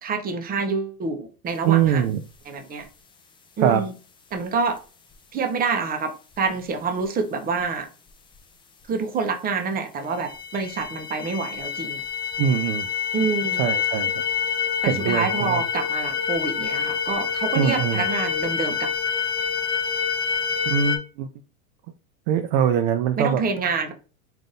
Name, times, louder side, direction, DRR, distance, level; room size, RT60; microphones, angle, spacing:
voice 1, 0.0-2.1 2.5-2.9 3.6-3.9 4.3-4.8 5.3-7.9 8.9-12.0 13.1-13.6 14.8-18.9 23.2-23.9, right 5 dB, 20° right, 0.8 m, -27 dB
voice 2, 1.6-2.2 3.6-3.8 12.4-12.9 13.6-14.1 14.9-15.6 17.6-18.0 20.7-21.3 22.3-23.4, right 8 dB, 50° right, 0.5 m, -22 dB
sound 1, 10.3-21.0, left 7 dB, 10° left, 0.6 m, -27 dB
3.8 x 2.7 x 3.7 m
hypercardioid pair, 115°, 44 cm